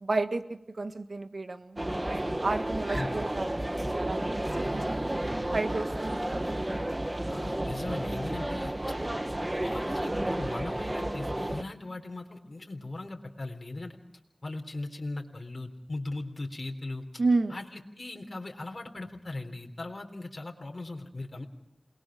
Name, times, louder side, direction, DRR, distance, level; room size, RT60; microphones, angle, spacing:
voice 1, 0.0-1.8 2.4-5.0 5.5-6.5 17.2-17.5, right 3 dB, 70° right, 8 dB, 1.6 m, -31 dB
sound 1, 1.8-11.6, right 1 dB, 25° right, 1.2 m, -32 dB
voice 2, 7.3-8.7 9.6-14.0 14.4-17.0 17.5-21.5, left 2 dB, 50° left, 2 dB, 3.7 m, -38 dB
28.5 x 21.0 x 5.1 m, 0.81 s
wide cardioid pair, 45°, 0 cm